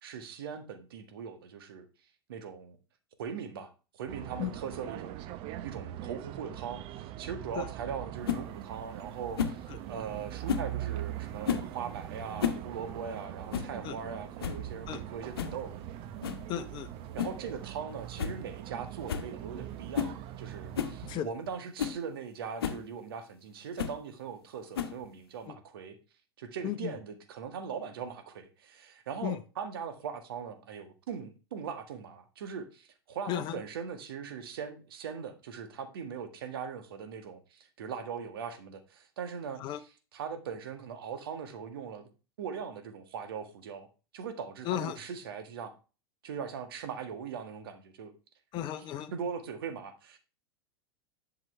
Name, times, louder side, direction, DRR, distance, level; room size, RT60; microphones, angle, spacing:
voice 1, 0.0-1.9 2.3-2.8 3.2-5.2 5.6-15.7 17.1-26.0 26.4-39.6 40.1-42.1 42.4-43.9 44.1-45.7 46.2-48.1 49.1-50.2, right 6 dB, 65° right, 1.7 m, -40 dB
sound 1, 4.1-21.2, right 12 dB, 45° right, 0.8 m, -42 dB
sound 2, 8.2-8.4 9.4-9.6 10.5-10.7 11.4-11.7 12.2-12.7 12.9-13.0 13.5-13.7 14.1-14.2 14.4-14.7 15.4-15.6 16.2-16.4 17.2-17.4 17.8-17.9 18.2-18.4 18.7-18.8 19.1-19.3 19.9-20.2 20.7-21.0 21.5-21.6 21.8-22.0 22.6-22.8 23.8-24.0 24.7-25.1, left 8 dB, 70° left, 1.1 m, -32 dB
voice 2, 16.5-16.9 21.0-21.3 25.5-25.6 26.6-26.9 29.2-29.4 33.3-33.6 39.6-39.8 44.6-45.0 48.5-49.1, left 12 dB, 35° left, 0.8 m, -34 dB
11.0 x 6.0 x 3.3 m
figure-of-eight pair, 95°, 13 cm